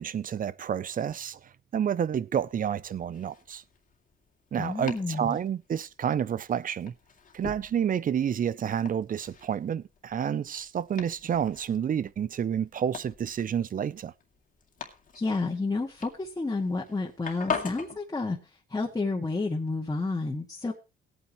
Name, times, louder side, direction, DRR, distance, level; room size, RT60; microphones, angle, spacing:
voice 1, 0.0-1.4 1.7-3.6 4.5-6.9 7.3-14.1, right 8 dB, 45° right, 0.6 m, -29 dB
Domestic sounds home sounds, 2.4-18.0, left 6 dB, 45° left, 2.3 m, -43 dB
voice 2, 4.6-5.4 15.1-18.4 18.7-20.7, left 3 dB, 20° left, 2.0 m, -30 dB
18.0 x 9.0 x 3.1 m
cardioid pair, 90°, 20 cm